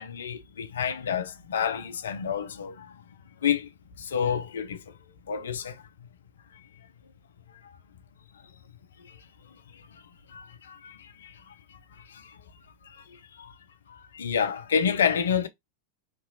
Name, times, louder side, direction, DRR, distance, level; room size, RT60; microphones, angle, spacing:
voice 1, 0.0-2.9 3.4-3.7 4.0-4.8 5.3-5.8 10.3-11.5 12.1-12.3 13.4-13.5 13.9-15.5, left 7 dB, 65° left, 0.4 m, -29 dB
3.0 x 2.9 x 2.6 m
figure-of-eight pair, 90°, 0 cm